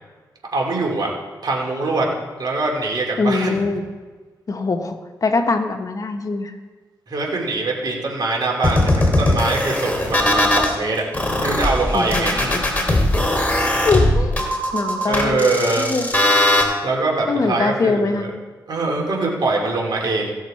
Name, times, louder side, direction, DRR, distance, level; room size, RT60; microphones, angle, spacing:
voice 1, 0.5-1.1 1.4-2.1 2.4-3.5 7.1-11.0 11.4-12.6 15.0-15.9 16.8-18.3 18.7-20.3, right 3 dB, 60° right, -1 dB, 2.7 m, -23 dB
voice 2, 3.2-3.8 4.5-6.6 11.9-12.6 13.8-15.5 15.8-16.1 17.3-18.3, left 3 dB, 45° left, 6 dB, 1.2 m, -22 dB
sound 1, 8.6-10.7 11.1-16.6, left 1 dB, 20° left, 2.5 m, -19 dB
16.0 x 6.6 x 4.3 m, 1.3 s
cardioid pair, 70°, 8 cm